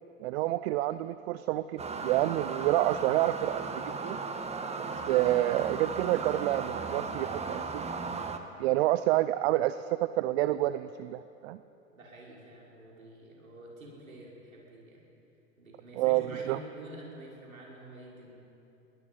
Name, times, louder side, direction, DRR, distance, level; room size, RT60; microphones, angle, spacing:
voice 1, 0.2-4.2 4.8-7.8 8.6-11.6 16.0-16.6, right 15 dB, 50° right, 14 dB, 0.7 m, -28 dB
sound 1, 1.8-8.4, right 4 dB, 15° right, 1.5 m, -36 dB
voice 2, 11.9-15.0 15.6-18.3, right 1 dB, 85° right, -3 dB, 6.0 m, -48 dB
23.5 x 19.0 x 5.8 m, 2.9 s
hypercardioid pair, 95°, 40 cm